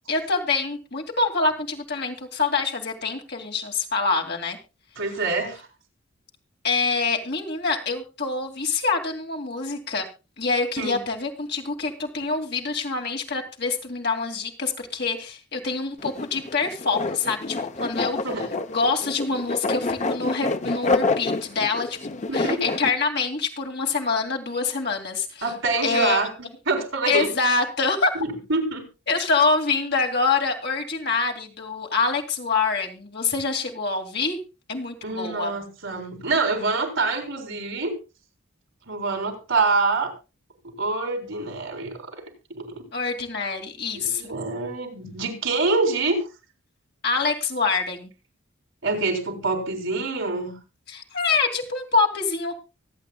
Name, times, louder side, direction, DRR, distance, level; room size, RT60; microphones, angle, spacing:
voice 1, 0.1-4.6 6.6-10.1 10.4-18.2 18.7-25.4 25.8-26.2 27.1-28.2 29.1-34.4 34.7-35.6 42.9-44.3 47.0-48.1 50.9-52.5, left 4 dB, 50° left, 2 dB, 2.5 m, -25 dB
voice 2, 5.0-5.7 10.8-11.0 18.2-18.5 22.3-22.6 25.4-27.3 28.1-28.9 35.0-38.0 38.9-40.1 40.6-42.2 42.6-42.8 43.9-46.3 48.8-50.6, right 3 dB, 65° right, 5 dB, 3.7 m, -26 dB
sound 1, 16.0-22.9, left 3 dB, 35° left, 0.7 m, -27 dB
24.5 x 8.5 x 2.3 m, 0.29 s
head